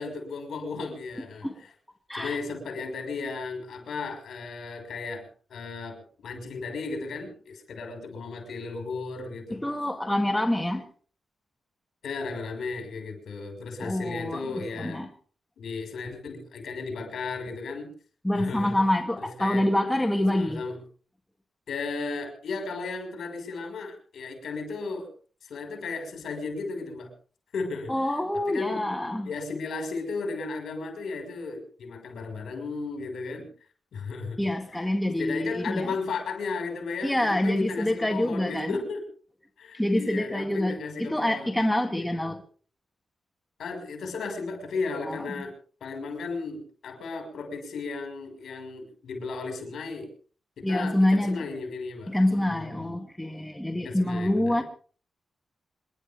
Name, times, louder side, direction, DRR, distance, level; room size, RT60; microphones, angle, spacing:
voice 1, 0.0-1.5 2.1-6.0 6.2-9.6 12.0-15.0 15.6-17.9 18.3-18.8 19.2-19.7 20.3-20.8 21.7-25.1 25.4-27.1 27.5-27.9 28.5-28.9 29.3-33.5 33.9-34.4 35.2-39.0 39.6-41.6 42.0-42.1 43.6-45.5 45.8-50.1 50.6-52.9 53.8-54.6, left 4 dB, 80° left, 5.9 m, -35 dB
voice 2, 9.5-10.9 13.8-15.1 18.2-20.6 27.9-29.3 34.4-35.9 37.0-38.8 39.7-42.4 45.0-45.3 50.6-51.4 52.1-54.6, left 1 dB, 5° left, 1.7 m, -26 dB
27.0 x 11.5 x 3.7 m
wide cardioid pair, 125°, 0 cm